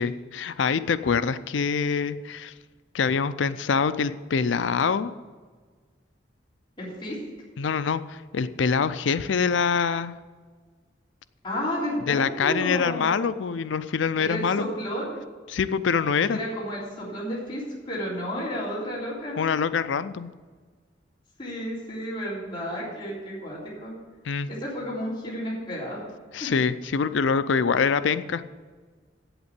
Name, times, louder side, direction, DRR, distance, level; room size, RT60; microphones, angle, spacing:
voice 1, 0.0-2.5 2.9-5.1 7.6-10.1 12.1-14.7 15.5-16.4 19.4-20.3 24.3-24.5 26.3-28.4, left 5 dB, 75° left, 14 dB, 0.5 m, -25 dB
voice 2, 6.8-7.2 11.4-13.1 14.2-15.2 16.3-19.4 21.4-23.9 24.5-26.0 26.4-26.5, equal, 25° left, -7 dB, 3.5 m, -32 dB
8.1 x 8.0 x 8.2 m, 1.5 s
head